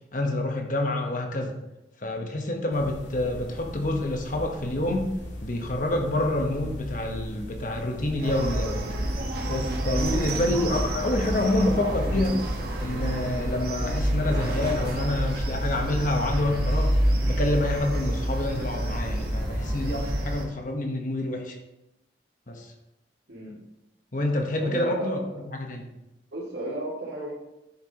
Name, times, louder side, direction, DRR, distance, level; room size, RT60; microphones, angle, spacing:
voice 1, 0.1-1.5 2.0-5.1 5.4-8.9 9.5-12.4 12.8-17.0 17.3-21.6 22.5-22.7 24.1-25.9, left 1 dB, 45° left, 3 dB, 1.1 m, -27 dB
sound 1, 2.7-20.1, left 1 dB, 75° left, 2.2 m, -38 dB
sound 2, 8.2-20.5, right 1 dB, 55° right, 1.4 m, -28 dB
voice 2, 24.6-25.2 26.3-27.3, right 1 dB, 85° right, -10 dB, 2.4 m, -34 dB
10.0 x 6.8 x 3.0 m, 0.91 s
head